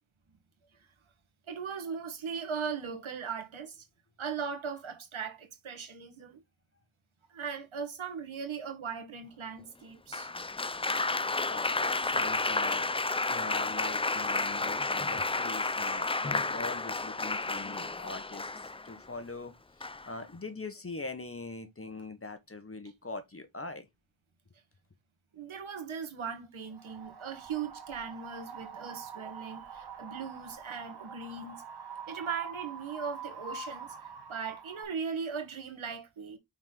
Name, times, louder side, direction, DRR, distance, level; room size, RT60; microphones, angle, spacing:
voice 1, 1.5-3.9 4.2-6.4 7.3-10.3 25.3-31.6 32.1-36.4, right 6 dB, 85° right, 1.6 m, -38 dB
Applause, 10.1-19.0 19.8-20.2, left 3 dB, 15° left, 0.4 m, -31 dB
voice 2, 11.5-23.9, left 3 dB, 30° left, 1.2 m, -42 dB
Wind, 26.7-34.8, right 5 dB, 55° right, 1.8 m, -45 dB
5.7 x 4.5 x 3.9 m
wide cardioid pair, 70°, 47 cm